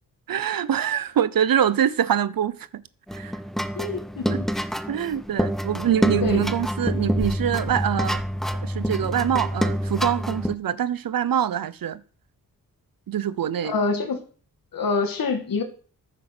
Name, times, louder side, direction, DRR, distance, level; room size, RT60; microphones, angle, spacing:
voice 1, 0.3-2.8 3.1-3.3 4.3-4.4 4.9-8.2 8.6-12.0 13.1-13.7, right 9 dB, 75° right, 0.9 m, -24 dB
sound 1, 3.1-10.5, equal, ahead, 0.8 m, -27 dB
voice 2, 3.8-4.5 6.2-6.5 13.6-14.2 14.7-15.6, left 4 dB, 75° left, 2.3 m, -26 dB
14.0 x 7.7 x 6.2 m
wide cardioid pair, 120°, 35 cm